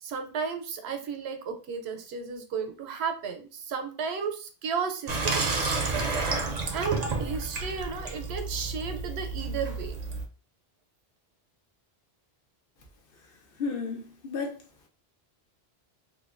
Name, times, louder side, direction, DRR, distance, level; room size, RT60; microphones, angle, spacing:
voice 1, 0.0-6.1 6.7-9.9, right 6 dB, 85° right, 0.8 m, -34 dB
Water tap faucet / Sink (filling or washing), 5.1-10.2, right 3 dB, 55° right, 0.5 m, -30 dB
voice 2, 13.6-14.6, left 4 dB, 65° left, 0.8 m, -32 dB
2.9 x 2.2 x 2.4 m
omnidirectional pair, 1.1 m